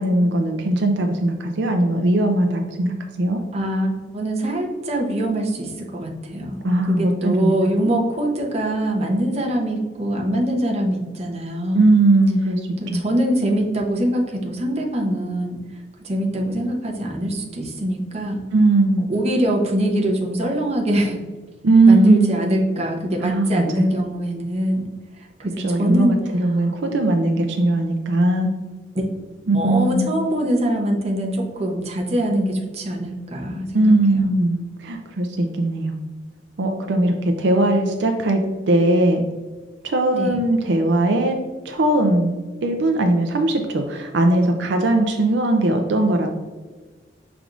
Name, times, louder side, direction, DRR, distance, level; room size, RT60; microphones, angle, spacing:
voice 1, 0.0-3.4 6.6-7.9 11.7-12.6 12.9-13.0 18.5-19.0 21.6-22.3 23.2-23.9 25.4-28.5 29.5-30.1 33.7-35.9 36.6-38.4 38.7-39.2 39.8-41.4 41.6-42.3 42.6-46.3, right 2 dB, 75° right, 3 dB, 0.5 m, -19 dB
voice 2, 3.5-6.6 6.9-11.9 12.8-18.4 19.1-21.2 21.9-24.9 25.2-26.2 28.9-29.1 29.5-34.2 40.1-40.4, right 1 dB, 35° right, 0 dB, 0.8 m, -23 dB
6.0 x 3.4 x 2.5 m, 1.3 s
head